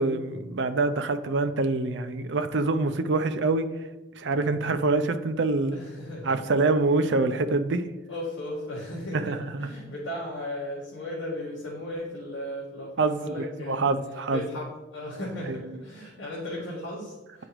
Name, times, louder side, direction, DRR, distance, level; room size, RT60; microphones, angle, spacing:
voice 1, 0.0-3.7 4.2-5.8 6.2-7.9 9.1-9.7 13.0-14.4 15.5-15.6, right 3 dB, 60° right, 10 dB, 0.5 m, -25 dB
voice 2, 5.7-6.4 8.1-13.9 14.3-14.6 14.9-17.4, left 1 dB, 75° left, -7 dB, 1.7 m, -36 dB
9.5 x 4.9 x 3.0 m, 1.1 s
head